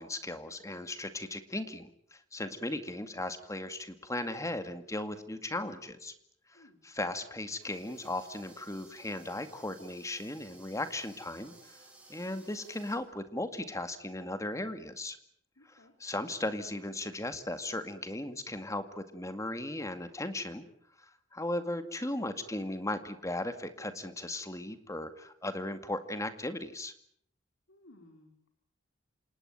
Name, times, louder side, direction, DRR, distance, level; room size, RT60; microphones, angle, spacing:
voice 1, 0.0-6.1 6.5-11.8 12.1-15.2 15.7-20.7 21.3-26.9, left 1 dB, 15° left, 10 dB, 2.1 m, -37 dB
sound 1, 7.6-13.0, right 2 dB, 5° right, 6.6 m, -57 dB
voice 2, 15.6-15.9 27.7-28.5, left 1 dB, 70° left, 4 dB, 4.4 m, -59 dB
28.0 x 19.0 x 9.3 m, 0.69 s
head